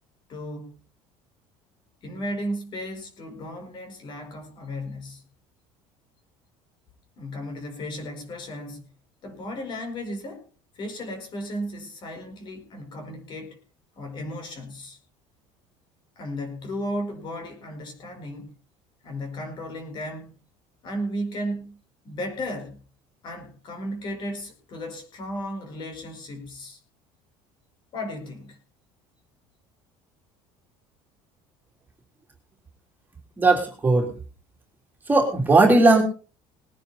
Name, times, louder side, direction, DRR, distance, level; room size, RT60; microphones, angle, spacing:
voice 1, 0.3-0.7 2.0-5.2 7.2-8.8 9.2-10.4 10.7-13.6 14.0-15.0 16.2-18.5 19.0-20.4 20.8-21.8 22.0-22.8 23.2-26.8 27.9-28.6, equal, 40° left, 5 dB, 4.9 m, -34 dB
voice 2, 33.4-34.1 35.1-36.0, right 2 dB, 15° right, 1 dB, 3.4 m, -17 dB
20.5 x 9.8 x 4.2 m, 0.35 s
cardioid pair, 145°, 12 cm